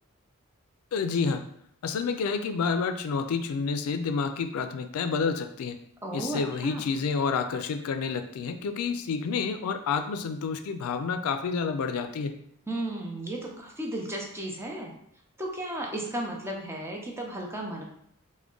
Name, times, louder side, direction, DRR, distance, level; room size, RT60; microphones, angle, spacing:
voice 1, 0.9-1.4 1.8-5.8 6.1-12.3, left 5 dB, 90° left, 8 dB, 0.4 m, -29 dB
voice 2, 6.0-6.9 12.7-14.9 15.4-17.8, right 1 dB, 10° right, 0 dB, 0.5 m, -34 dB
3.5 x 2.1 x 3.7 m, 0.70 s
head